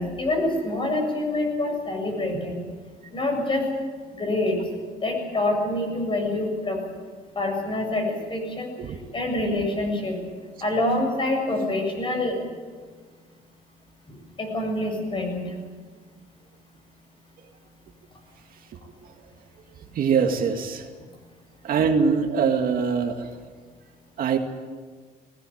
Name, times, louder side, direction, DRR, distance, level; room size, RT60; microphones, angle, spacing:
voice 1, 0.0-2.6 3.1-3.6 4.1-4.6 5.0-6.8 7.4-8.7 9.1-10.2 10.6-12.4 14.1-15.4, left 2 dB, 30° left, 3 dB, 7.4 m, -26 dB
voice 2, 19.9-20.9 21.6-23.3 24.2-24.4, right 6 dB, 60° right, 4 dB, 2.2 m, -23 dB
19.0 x 18.5 x 8.8 m, 1.5 s
cardioid pair, 110°, 17 cm